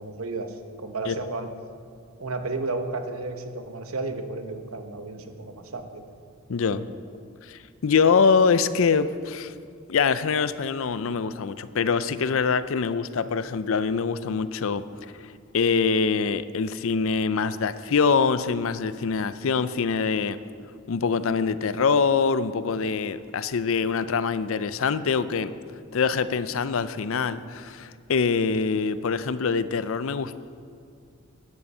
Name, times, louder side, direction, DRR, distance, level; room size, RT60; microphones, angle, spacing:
voice 1, 0.0-1.5 2.2-6.0, right 3 dB, 75° right, 7 dB, 1.1 m, -33 dB
voice 2, 6.5-6.9 7.4-9.5 9.9-15.3 15.5-20.4 20.9-25.5 25.9-30.4, left 5 dB, 65° left, 14 dB, 0.5 m, -24 dB
12.5 x 9.8 x 5.5 m, 2.3 s
head